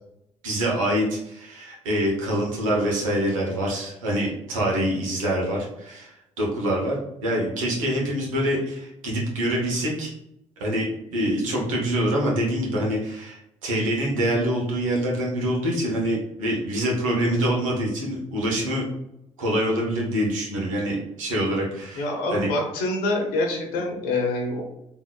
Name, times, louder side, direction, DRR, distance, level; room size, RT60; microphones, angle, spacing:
voice 1, 0.4-10.1 10.6-18.8 19.4-22.1 22.3-22.5, equal, 85° right, -2 dB, 1.0 m, -25 dB
voice 2, 22.0-24.6, left 2 dB, 70° left, 1 dB, 0.9 m, -26 dB
3.8 x 2.8 x 2.3 m, 0.83 s
hypercardioid pair, 50°, 17 cm